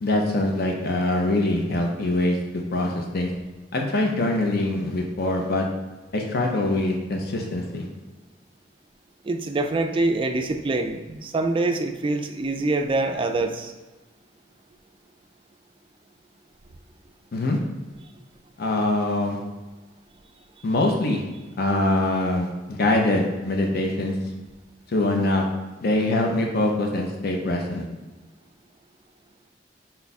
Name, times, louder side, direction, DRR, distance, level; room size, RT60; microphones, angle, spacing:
voice 1, 0.0-3.3 3.7-5.7 6.1-7.9 17.3-17.6 18.6-19.4 20.6-21.2 21.6-24.1 24.9-25.4 25.8-27.9, left 2 dB, 55° left, 1 dB, 0.6 m, -23 dB
voice 2, 9.2-13.7, right 2 dB, 30° right, 6 dB, 0.3 m, -25 dB
5.4 x 2.3 x 4.0 m, 1.2 s
head